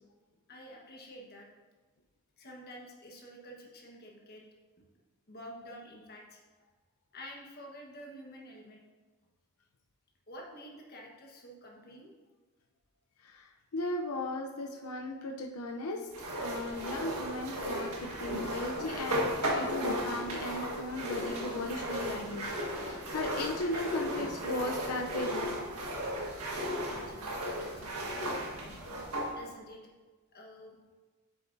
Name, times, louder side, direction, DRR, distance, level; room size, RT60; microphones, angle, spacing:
voice 1, 0.5-1.5 2.4-4.4 4.8-4.9 5.3-6.4 7.1-8.8 10.3-12.1 26.4-28.8 29.3-29.8 30.3-30.8, equal, 45° left, -1 dB, 1.3 m, -49 dB
voice 2, 13.2-16.1 16.4-19.3 19.5-25.5 28.2-28.3, left 1 dB, 85° left, 1 dB, 0.6 m, -37 dB
sound 1, 16.1-29.3, equal, 90° right, 1.6 m, -35 dB
8.4 x 6.9 x 2.6 m, 1.3 s
head